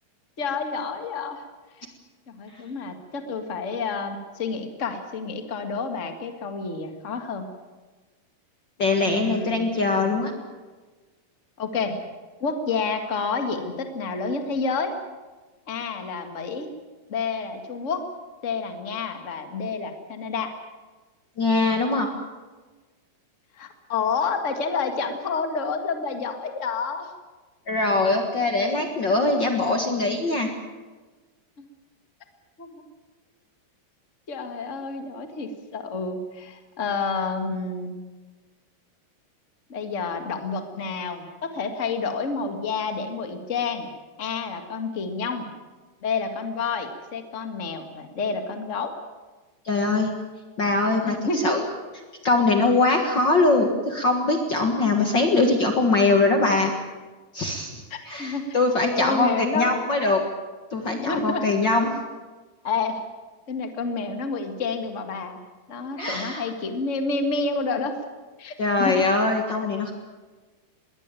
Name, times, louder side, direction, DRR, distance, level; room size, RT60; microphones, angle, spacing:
voice 1, 0.4-1.4 1.8-1.9 2.3-7.5 9.0-9.6 11.6-12.0 12.4-14.9 15.7-16.7 17.1-18.0 18.4-20.5 23.6-27.1 28.5-28.7 31.6-31.7 32.6-32.9 34.3-38.0 39.7-43.9 44.2-45.5 46.0-48.9 51.1-51.5 57.9-58.6 59.0-59.7 60.8-61.4 62.6-63.0 63.5-65.4 65.7-68.0 68.4-69.0, left 4 dB, 55° left, 6 dB, 0.8 m, -29 dB
voice 2, 8.8-10.3 21.4-22.1 27.7-30.5 49.6-50.1 50.6-51.2 51.4-51.6 52.2-56.7 57.3-60.2 60.7-61.9 66.0-66.4 68.6-69.9, left 3 dB, 90° left, 4 dB, 1.0 m, -22 dB
21.5 x 18.5 x 9.1 m, 1.3 s
omnidirectional pair, 4.9 m